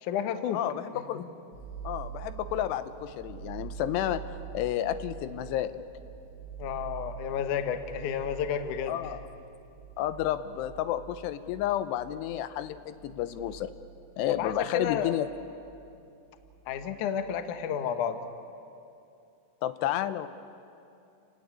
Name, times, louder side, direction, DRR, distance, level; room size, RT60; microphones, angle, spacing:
voice 1, 0.0-0.6 1.2-1.3 6.6-9.1 14.4-15.1 16.7-18.2, left 8 dB, 65° left, 8 dB, 2.1 m, -31 dB
voice 2, 0.5-1.2 1.8-4.2 4.5-5.8 8.9-9.2 10.0-13.7 14.2-15.3 19.6-20.3, left 12 dB, 85° left, 12 dB, 2.9 m, -31 dB
sound 1, 1.5-17.6, right 9 dB, 35° left, 3.8 m, -46 dB
29.0 x 16.5 x 9.6 m, 2.6 s
omnidirectional pair, 4.8 m